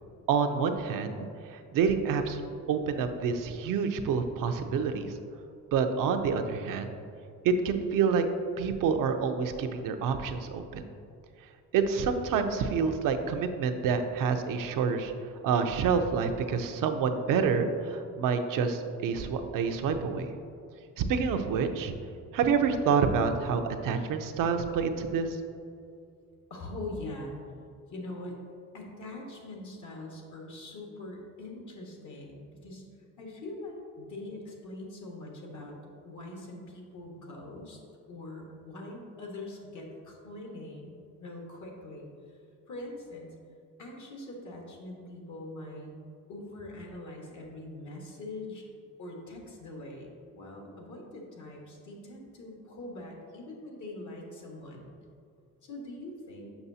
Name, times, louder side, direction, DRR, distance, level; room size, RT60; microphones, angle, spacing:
voice 1, 0.3-2.4 2.7-5.1 5.7-7.0 7.4-8.3 8.6-10.8 11.7-15.1 15.4-20.3 21.0-21.9 22.3-25.4, right 6 dB, 80° right, 7 dB, 0.6 m, -28 dB
voice 2, 26.5-27.4 27.9-28.4 28.7-32.8 33.2-37.8 38.1-40.9 41.2-42.4 42.7-43.3 43.8-45.9 46.3-48.6 49.0-50.1 50.3-54.9 55.6-56.5, left 2 dB, 65° left, 0 dB, 1.4 m, -43 dB
7.0 x 5.4 x 2.7 m, 2.5 s
cardioid pair, 95°, 32 cm